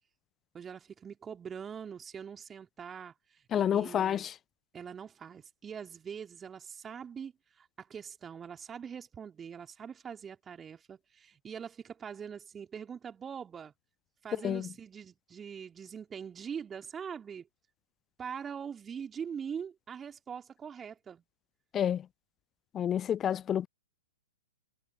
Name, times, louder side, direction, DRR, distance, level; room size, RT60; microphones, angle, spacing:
voice 1, 0.5-4.3 4.7-13.7 14.2-17.5 18.2-21.2, right 7 dB, 15° right, 3.3 m, -43 dB
voice 2, 3.5-4.4 14.4-14.7 21.7-22.1 22.7-23.7, left 9 dB, 20° left, 0.4 m, -29 dB
figure-of-eight pair, 115°, 0 cm